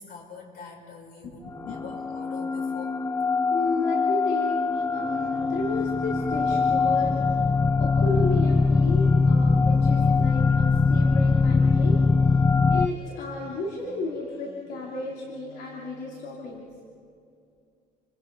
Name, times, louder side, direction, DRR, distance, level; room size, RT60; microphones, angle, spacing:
voice 1, 0.0-3.3, left 4 dB, 60° left, 1 dB, 6.0 m, -44 dB
sound 1, 1.6-12.9, left 4 dB, 15° left, 0.4 m, -22 dB
voice 2, 3.5-4.6 4.9-7.4 7.8-12.0 12.3-12.4 12.7-16.7, left 3 dB, 75° left, -3 dB, 3.4 m, -33 dB
sound 2, 4.7-10.5 11.3-16.4, equal, 35° left, 5.0 m, -49 dB
29.5 x 25.0 x 4.1 m, 2.4 s
cardioid pair, 110°, 17 cm